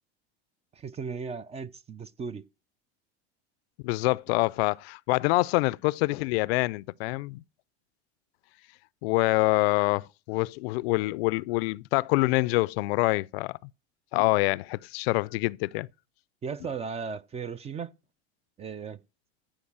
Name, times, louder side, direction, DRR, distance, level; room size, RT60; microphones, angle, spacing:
voice 1, 0.7-2.4 16.4-18.0 18.6-19.0, right 6 dB, 20° right, 0.4 m, -36 dB
voice 2, 3.8-7.4 9.0-13.5 14.1-15.9, left 23 dB, 70° left, 0.5 m, -26 dB
14.5 x 4.9 x 7.3 m
supercardioid pair, 110°, 33 cm